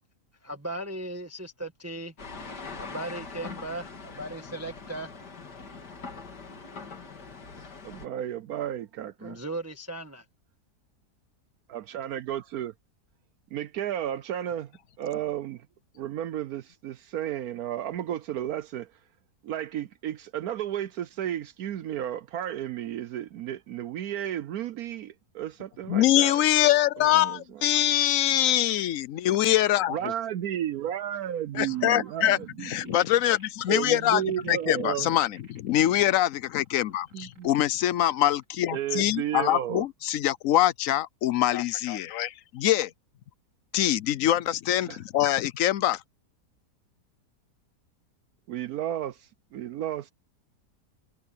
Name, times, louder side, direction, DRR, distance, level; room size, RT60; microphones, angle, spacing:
voice 1, 0.4-2.1 2.8-5.1 9.2-10.2, right 1 dB, 10° right, 1.4 m, -37 dB
sound 1, 2.2-8.1, left 4 dB, 85° left, 3.0 m, -42 dB
voice 2, 7.8-9.4 11.7-12.7 13.5-14.7 15.0-15.7 15.9-18.9 19.4-26.4 27.0-27.4 29.9-33.0 33.7-35.1 37.1-37.5 38.7-39.9 44.9-45.0 48.5-50.1, right 11 dB, 70° right, 1.1 m, -33 dB
voice 3, 25.9-30.0 31.5-34.2 34.5-42.9 43.7-46.0, left 12 dB, 65° left, 0.9 m, -24 dB
sound 2, 30.8-35.9 36.4-38.4 38.9-39.6, right 2 dB, 50° right, 3.6 m, -59 dB
omnidirectional pair, 1.7 m